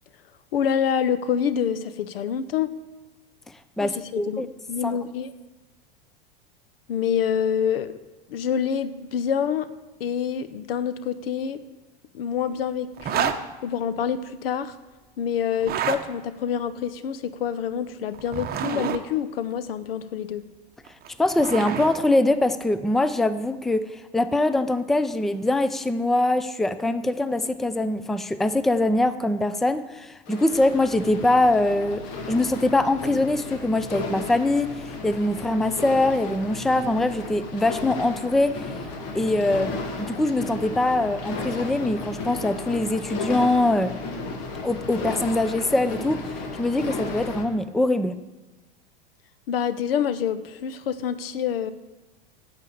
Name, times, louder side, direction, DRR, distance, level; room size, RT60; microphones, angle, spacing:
voice 1, 0.5-2.7 3.8-4.4 4.7-5.3 6.9-7.9 8.3-9.7 10.0-11.6 12.1-13.3 13.6-14.7 15.2-20.4 49.5-51.7, left 8 dB, 75° left, 13 dB, 0.9 m, -26 dB
voice 2, 3.8-4.5 4.8-5.0 21.2-32.0 32.3-38.6 39.1-43.9 44.6-46.2 46.6-48.1, left 2 dB, ahead, 12 dB, 0.5 m, -23 dB
sound 1, 13.0-13.4 15.5-16.0 18.1-19.0 20.9-22.0, right 9 dB, 30° right, 1.0 m, -28 dB
sound 2, 30.3-47.4, left 3 dB, 50° left, 2.0 m, -34 dB
9.1 x 7.0 x 8.7 m, 1.1 s
hypercardioid pair, 95°, 29 cm